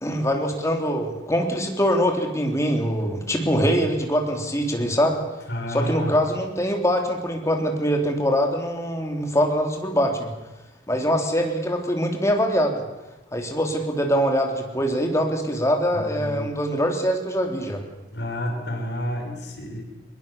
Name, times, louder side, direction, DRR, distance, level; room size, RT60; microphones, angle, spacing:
voice 1, 0.0-5.2 5.7-10.3 10.9-12.8 13.3-17.8, equal, 15° left, 3 dB, 3.2 m, -23 dB
voice 2, 5.5-6.2 15.9-16.5 18.1-19.8, equal, 65° left, 2 dB, 5.6 m, -29 dB
22.0 x 21.5 x 7.1 m, 1.0 s
head